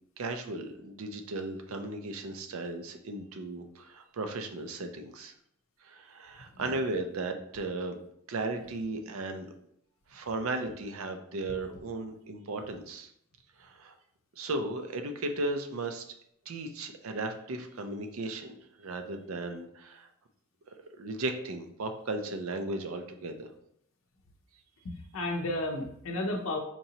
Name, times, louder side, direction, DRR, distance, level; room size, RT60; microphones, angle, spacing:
voice 1, 0.2-5.3 5.8-8.0 8.3-9.5 10.1-13.1 13.6-13.9 14.4-16.0 16.5-20.1 20.7-23.5, right 2 dB, 75° right, 6 dB, 0.5 m, -36 dB
voice 2, 24.8-26.6, left 1 dB, 65° left, 1 dB, 0.6 m, -33 dB
4.4 x 2.8 x 2.7 m, 0.72 s
head